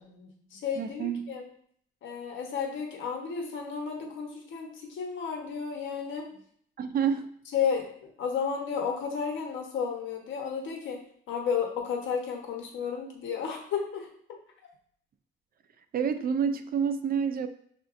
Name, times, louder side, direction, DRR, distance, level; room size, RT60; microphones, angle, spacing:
voice 1, 0.0-1.4 2.0-6.3 7.5-11.0 11.3-14.1, left 6 dB, 75° left, 1 dB, 1.1 m, -32 dB
voice 2, 0.8-1.3 6.8-7.3 15.9-17.5, right 7 dB, 50° right, 9 dB, 0.4 m, -28 dB
6.8 x 2.5 x 2.5 m, 0.64 s
cardioid pair, 90°, 20 cm